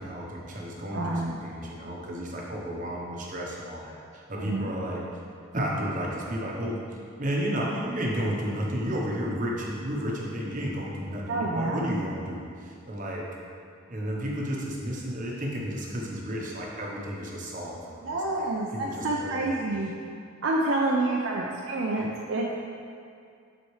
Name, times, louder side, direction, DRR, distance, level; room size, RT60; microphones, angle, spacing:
voice 1, 0.0-5.0 5.5-6.8 7.2-13.3 13.9-18.5 18.7-19.5, equal, 40° right, -2 dB, 0.9 m, -32 dB
voice 2, 0.9-1.4 4.4-4.7 11.3-12.0 18.0-19.9 20.4-22.5, right 2 dB, 70° right, -3 dB, 0.5 m, -28 dB
8.3 x 4.2 x 3.2 m, 2.3 s
head